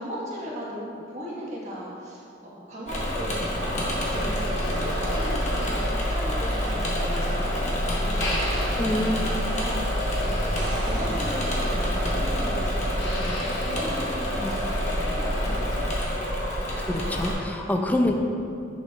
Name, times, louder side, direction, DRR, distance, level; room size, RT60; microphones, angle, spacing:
voice 1, 0.0-8.9 9.2-10.5 10.8-16.0 17.6-17.7, equal, 40° right, -6 dB, 1.4 m, -37 dB
Engine / Mechanisms, 2.9-17.3, equal, 40° left, 1.0 m, -27 dB
Motor vehicle (road), 3.9-15.6, left 1 dB, 75° left, 1.0 m, -39 dB
voice 2, 8.8-9.3 14.4-14.5 16.8-18.1, left 1 dB, 10° left, 3 dB, 0.4 m, -26 dB
sound 1, 10.4-12.3 16.0-16.1, right 2 dB, 80° right, 0.7 m, -41 dB
6.4 x 6.2 x 2.4 m, 2.6 s
head